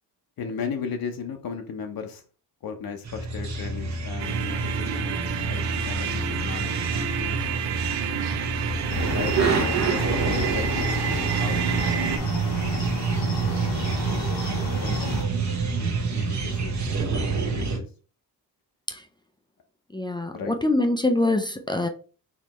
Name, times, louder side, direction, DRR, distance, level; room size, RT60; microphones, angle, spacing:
voice 1, 0.4-2.2 2.6-5.2 5.5-7.4 9.1-12.2 14.0-14.3 14.8-15.2 15.8-16.8 17.3-17.9 20.3-20.5, left 6 dB, 60° left, 4 dB, 0.8 m, -36 dB
sound 1, 3.0-17.8, right 4 dB, 40° right, 0.9 m, -27 dB
sound 2, 4.2-12.2, right 10 dB, 85° right, 0.6 m, -30 dB
Cricket, 8.9-15.2, left 4 dB, 75° left, 1.2 m, -33 dB
voice 2, 19.9-21.9, left 2 dB, 10° left, 6 dB, 0.4 m, -24 dB
4.3 x 3.2 x 3.0 m, 0.37 s
cardioid pair, 100°, 41 cm